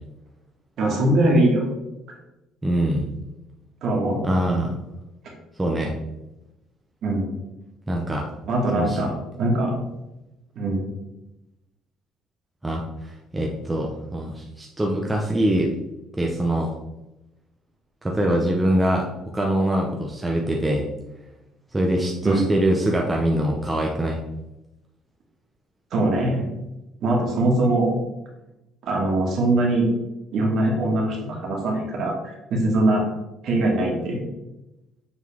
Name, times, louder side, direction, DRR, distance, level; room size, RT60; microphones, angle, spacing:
voice 1, 0.8-1.7 3.8-4.3 7.0-7.3 8.5-9.1 9.4-9.7 10.6-10.9 22.2-22.5 25.9-26.5 27.0-28.0 28.8-29.9 30.3-33.0 33.4-34.2, right 1 dB, 55° right, -1 dB, 1.9 m, -22 dB
voice 2, 2.6-3.1 4.2-4.8 5.6-5.9 7.9-8.3 8.7-9.0 12.6-12.8 13.3-15.7 16.2-16.7 18.0-19.1 19.3-20.9 21.7-24.2, right 1 dB, 10° right, -1 dB, 0.7 m, -23 dB
7.3 x 4.0 x 3.5 m, 0.94 s
cardioid pair, 135°, 0 cm